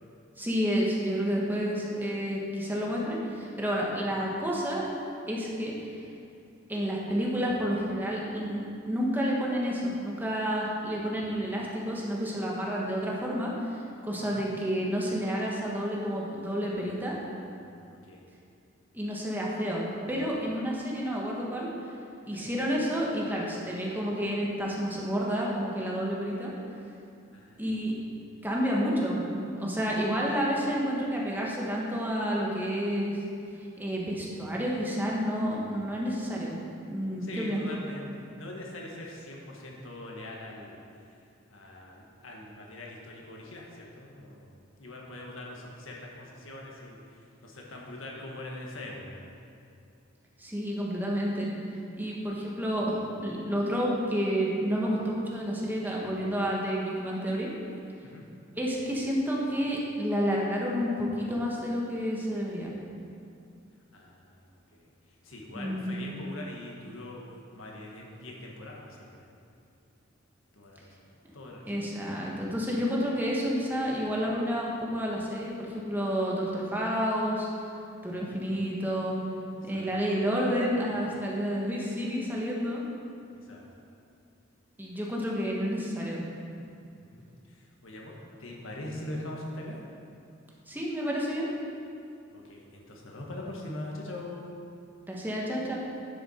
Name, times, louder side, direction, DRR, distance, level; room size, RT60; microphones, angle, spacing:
voice 1, 0.4-4.9 5.3-6.0 6.7-17.2 18.9-21.7 22.2-26.5 27.6-27.9 28.4-33.2 33.8-36.6 36.9-37.8 50.4-51.5 52.0-57.5 58.6-62.7 65.5-65.9 71.7-77.5 78.0-79.2 79.6-82.8 84.8-86.3 90.7-91.5 95.1-95.8, equal, 10° right, -4 dB, 1.3 m, -30 dB
voice 2, 17.6-18.3 22.3-22.5 27.3-27.8 37.2-40.8 41.4-44.5 44.8-47.0 47.4-49.2 58.0-58.2 63.9-64.9 65.2-67.2 67.5-69.3 70.5-70.9 71.3-71.7 78.1-78.4 79.5-79.9 83.4-83.7 87.0-89.8 92.3-94.6, left 1 dB, 80° left, -2 dB, 1.5 m, -42 dB
10.5 x 6.8 x 4.4 m, 2.5 s
head